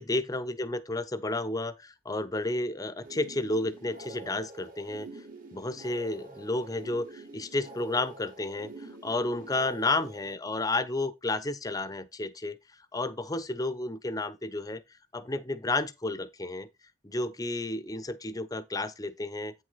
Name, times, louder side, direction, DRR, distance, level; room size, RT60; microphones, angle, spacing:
voice 1, 0.0-5.2 5.5-12.6 12.9-14.8 15.1-16.7 17.0-19.5, left 2 dB, 20° left, 0.8 m, -32 dB
sound 1, 3.0-10.3, right 2 dB, 50° right, 2.8 m, -46 dB
8.8 x 6.2 x 4.1 m
head